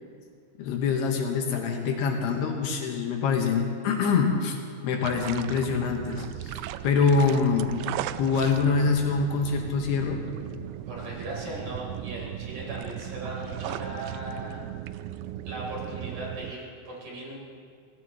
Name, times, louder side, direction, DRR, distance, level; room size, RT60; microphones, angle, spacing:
voice 1, 0.6-4.6 4.8-6.5 6.8-7.8 8.2-10.2, left 5 dB, 75° left, 2 dB, 3.2 m, -25 dB
sound 1, 5.0-16.5, right 13 dB, 90° right, 2.2 m, -37 dB
voice 2, 10.9-14.6 15.5-17.4, right 1 dB, 50° right, -4 dB, 5.1 m, -38 dB
25.5 x 18.0 x 3.1 m, 2.2 s
omnidirectional pair, 4.9 m